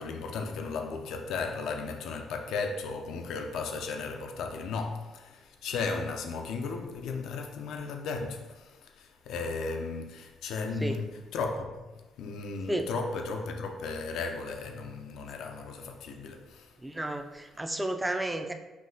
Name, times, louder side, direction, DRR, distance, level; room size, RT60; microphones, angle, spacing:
voice 1, 0.0-16.7, left 4 dB, 80° left, 0.5 m, -35 dB
voice 2, 16.8-18.5, right 1 dB, 10° right, 0.4 m, -32 dB
5.7 x 2.8 x 2.7 m
cardioid pair, 90°, 0 cm